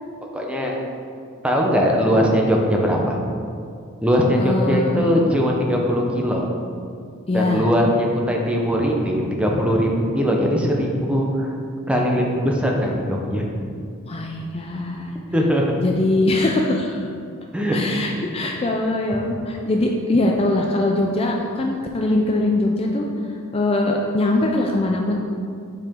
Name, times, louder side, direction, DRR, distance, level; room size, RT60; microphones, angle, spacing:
voice 1, 0.3-0.8 1.4-3.2 4.0-6.5 7.3-11.6 11.9-13.6 15.3-15.7 17.5-17.8 18.0-18.2, equal, 5° right, -1 dB, 0.7 m, -20 dB
voice 2, 4.4-5.3 7.3-7.7 14.0-15.2 15.8-17.1 17.7-23.1 23.5-25.2, left 2 dB, 25° left, 1 dB, 0.4 m, -22 dB
7.6 x 4.8 x 3.7 m, 2.3 s
head